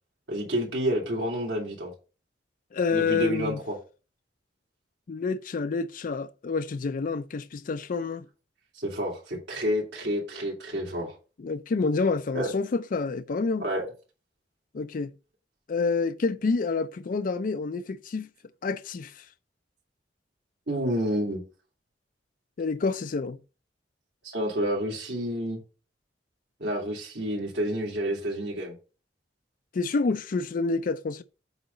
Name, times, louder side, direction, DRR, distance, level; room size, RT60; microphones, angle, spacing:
voice 1, 0.3-1.9 2.9-3.7 8.7-11.1 12.3-12.5 13.6-13.8 20.7-21.4 24.2-25.6 26.6-28.7, equal, 80° right, 2.8 m, -29 dB
voice 2, 2.7-3.6 5.1-8.3 11.4-13.6 14.7-15.1 15.7-18.3 18.6-19.3 22.6-23.4 29.7-31.2, left 4 dB, 50° left, 0.4 m, -28 dB
8.1 x 4.0 x 5.2 m
head